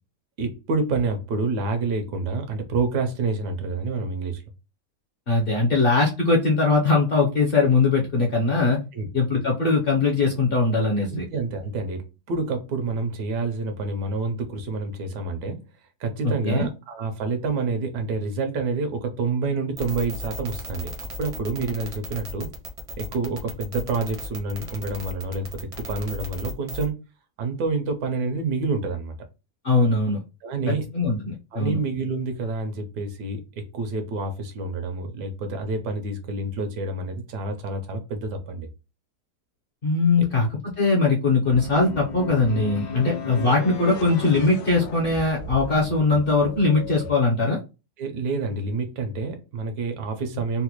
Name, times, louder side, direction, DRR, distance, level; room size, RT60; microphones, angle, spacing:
voice 1, 0.4-4.4 8.9-9.1 11.1-15.6 16.0-20.9 21.2-22.5 23.0-26.9 27.4-29.2 30.4-30.8 31.5-38.7 40.3-40.4 43.0-43.1 48.0-50.6, right 3 dB, 80° right, 1.3 m, -28 dB
voice 2, 5.3-8.8 9.1-11.3 16.2-16.7 29.6-30.2 30.9-31.8 39.8-40.5 40.8-47.6, left 3 dB, 50° left, 0.7 m, -21 dB
sound 1, 19.8-26.9, equal, 40° right, 0.4 m, -36 dB
sound 2, 41.4-47.1, left 4 dB, 75° left, 1.1 m, -35 dB
4.0 x 2.2 x 2.9 m
omnidirectional pair, 1.7 m